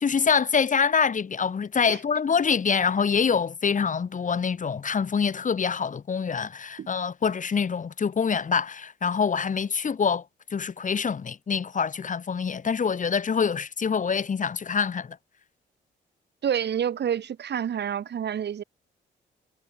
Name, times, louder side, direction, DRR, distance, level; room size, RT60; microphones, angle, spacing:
voice 1, 0.0-10.2 10.5-15.2, left 6 dB, 40° left, 2.2 m, -25 dB
voice 2, 16.4-18.6, right 9 dB, 60° right, 6.5 m, -28 dB
cardioid pair, 90°, 20 cm